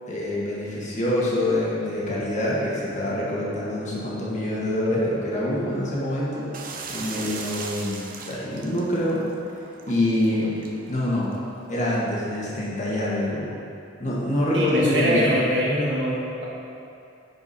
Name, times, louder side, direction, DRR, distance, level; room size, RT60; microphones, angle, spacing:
voice 1, 0.1-6.5 6.9-9.2 9.9-10.6 10.9-11.3 11.7-13.5 14.0-15.3, left 1 dB, 40° left, -6 dB, 1.6 m, -25 dB
turning off tub, 6.5-12.0, right 4 dB, 50° right, 0.7 m, -39 dB
voice 2, 14.5-16.5, equal, 65° right, -6 dB, 1.7 m, -23 dB
9.6 x 4.8 x 4.3 m, 2.6 s
head